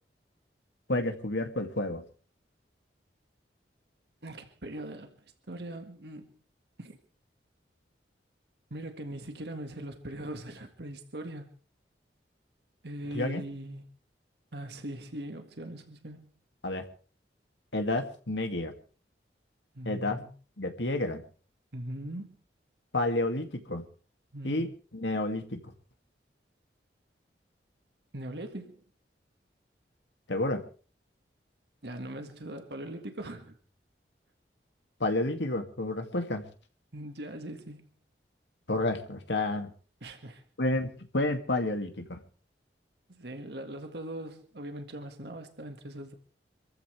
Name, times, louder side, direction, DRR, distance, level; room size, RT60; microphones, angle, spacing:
voice 1, 0.9-2.0 13.1-13.4 16.6-16.8 17.7-18.7 19.9-20.2 20.6-21.2 22.9-23.8 24.4-25.6 30.3-30.6 35.0-36.4 38.7-39.7 40.6-42.2, left 2 dB, 85° left, 2.4 m, -30 dB
voice 2, 4.2-5.2 5.5-6.3 6.8-7.0 8.7-11.5 12.8-13.9 14.5-16.3 19.8-20.3 21.7-22.4 24.3-24.6 28.1-28.8 31.8-33.6 36.9-37.9 40.0-40.4 43.1-46.1, right 1 dB, 65° right, 1.8 m, -40 dB
27.0 x 14.5 x 3.4 m
head